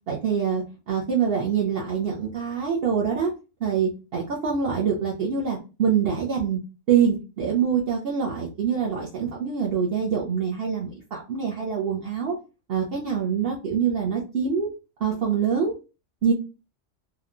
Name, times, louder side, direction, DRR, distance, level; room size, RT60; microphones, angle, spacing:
voice 1, 0.1-3.3 3.6-6.6 6.9-12.3 12.7-14.7 15.0-15.7 16.2-16.3, right 7 dB, 60° right, -3 dB, 0.8 m, -25 dB
2.9 x 2.2 x 2.4 m, 0.30 s
omnidirectional pair, 1.3 m